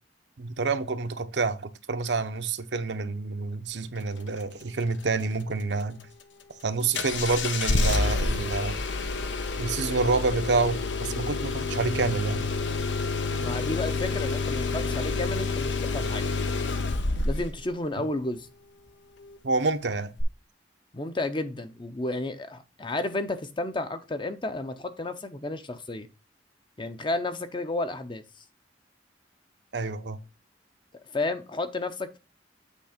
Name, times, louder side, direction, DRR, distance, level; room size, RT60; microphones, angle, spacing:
voice 1, 0.4-6.1 6.6-8.8 9.6-12.4 18.0-18.1 19.4-20.1 29.7-30.2, right 3 dB, 75° right, 0.7 m, -28 dB
Engine starting, 6.9-17.6 20.2-20.3, left 3 dB, 85° left, 0.8 m, -28 dB
voice 2, 13.4-16.3 17.2-18.5 20.9-26.1 26.8-28.2 31.1-32.2, left 2 dB, 25° left, 0.6 m, -32 dB
8.3 x 3.2 x 5.0 m
head